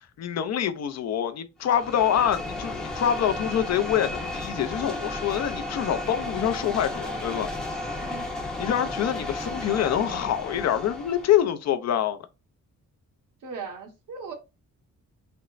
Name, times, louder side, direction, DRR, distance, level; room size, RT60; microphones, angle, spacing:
voice 1, 0.2-7.5 8.6-12.2, left 10 dB, 55° left, 0.5 m, -25 dB
sound 1, 1.6-11.5, left 2 dB, ahead, 0.5 m, -33 dB
voice 2, 13.4-14.3, right 5 dB, 90° right, 1.1 m, -38 dB
4.2 x 2.0 x 2.4 m
wide cardioid pair, 145°, 31 cm